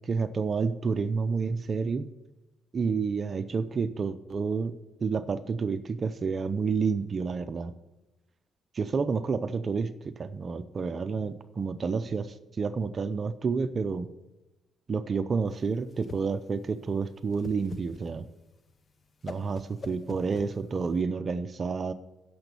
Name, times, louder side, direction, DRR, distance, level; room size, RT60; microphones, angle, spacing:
voice 1, 0.0-2.1 2.7-4.7 5.0-7.7 8.7-14.1 14.9-18.3 19.2-21.9, right 5 dB, 40° right, 12 dB, 0.6 m, -29 dB
Whoosh swoosh swish, 15.5-21.0, left 4 dB, 40° left, 0.8 m, -46 dB
10.5 x 7.1 x 6.8 m, 1.0 s
cardioid pair, 90°, 0 cm